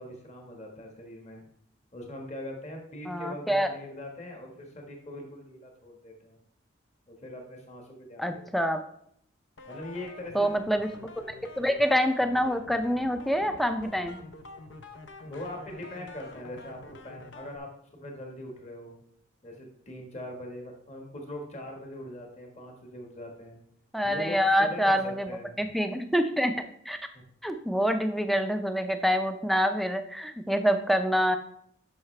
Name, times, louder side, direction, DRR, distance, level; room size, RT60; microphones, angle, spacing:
voice 1, 0.0-1.4 1.9-6.4 7.1-8.4 9.7-10.5 15.2-19.0 19.4-23.6 24.0-25.7 27.1-27.2, left 1 dB, 35° left, 1 dB, 1.4 m, -41 dB
voice 2, 3.1-3.7 8.2-8.8 10.3-11.1 11.6-14.2 23.9-25.3 25.6-26.5 26.9-27.0 27.4-31.4, equal, ahead, 7 dB, 0.4 m, -26 dB
sound 1, 9.6-17.6, left 3 dB, 70° left, 0.7 m, -47 dB
10.5 x 5.6 x 3.2 m, 0.69 s
head